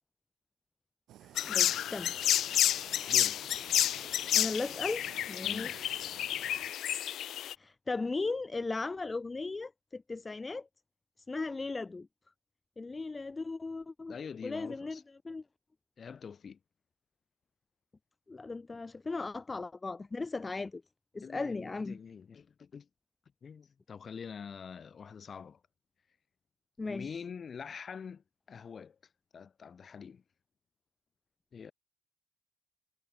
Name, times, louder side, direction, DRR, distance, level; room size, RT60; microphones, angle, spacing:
Fire, 1.1-6.7, right 13 dB, 90° right, 5.7 m, -54 dB
voice 1, 1.2-2.3 4.3-5.0 5.3-5.9 7.6-10.7 11.3-12.1 12.8-14.1 14.4-15.0 15.2-15.4 18.3-20.8 21.1-22.0 26.8-27.2, left 3 dB, 25° left, 1.4 m, -37 dB
sound 1, 1.4-7.5, left 11 dB, 80° left, 0.7 m, -30 dB
voice 2, 3.1-3.6 5.4-5.8 14.1-15.0 16.0-16.6 21.2-22.9 23.4-25.6 26.9-29.0 29.3-30.2 31.5-31.7, left 6 dB, 50° left, 3.7 m, -45 dB
cardioid pair, 95°, 0 cm